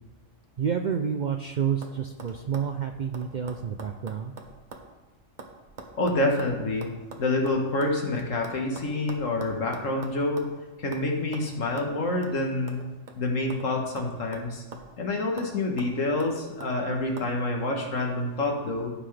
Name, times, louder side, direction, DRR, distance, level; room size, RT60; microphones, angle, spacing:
voice 1, 0.6-4.3, right 7 dB, 65° right, 5 dB, 0.4 m, -29 dB
sound 1, 1.0-1.4 1.8-4.9 5.2-8.0 8.4-10.6 10.9-11.1 11.3-11.5 11.8-11.9 12.2-12.4 12.7-13.7 14.0-15.0 15.4-15.5 15.8-16.7 17.2-17.3, right 3 dB, 40° right, 1.0 m, -44 dB
voice 2, 5.9-6.9 7.2-10.5 10.8-12.8 13.2-14.6 15.0-18.9, left 2 dB, 85° left, 1 dB, 1.8 m, -27 dB
14.5 x 5.8 x 3.3 m, 1.1 s
omnidirectional pair, 1.3 m